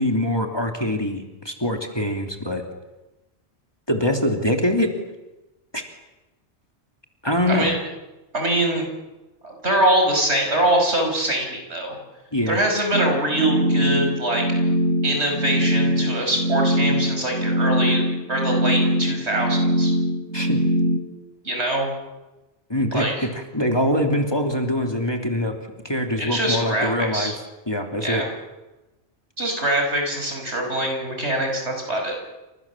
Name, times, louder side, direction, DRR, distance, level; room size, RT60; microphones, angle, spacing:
voice 1, 0.0-2.6 3.9-4.9 5.7-5.8 7.2-7.7 12.3-12.6 20.3-20.6 22.7-25.5 25.8-27.3 27.7-28.2, left 1 dB, 20° left, 2 dB, 3.0 m, -23 dB
voice 2, 7.5-7.8 8.3-8.9 9.4-12.0 12.5-14.4 15.0-18.0 18.3-19.9 21.4-21.9 22.9-23.1 26.1-27.3 28.0-28.3 29.4-32.1, right 1 dB, 65° right, 2 dB, 6.4 m, -23 dB
sound 1, 12.9-21.0, equal, 90° right, 3.5 m, -22 dB
29.0 x 26.5 x 7.4 m, 1.1 s
omnidirectional pair, 1.2 m